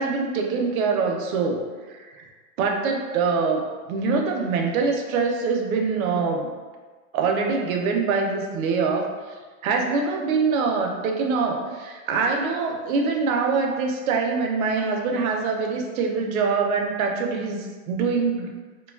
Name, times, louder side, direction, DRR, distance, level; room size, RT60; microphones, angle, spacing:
voice 1, 0.0-1.6 1.9-2.3 2.6-6.5 7.1-9.1 9.6-18.5, right 4 dB, 80° right, 2 dB, 0.6 m, -24 dB
2.9 x 2.3 x 2.2 m, 1.4 s
supercardioid pair, 165°, 41 cm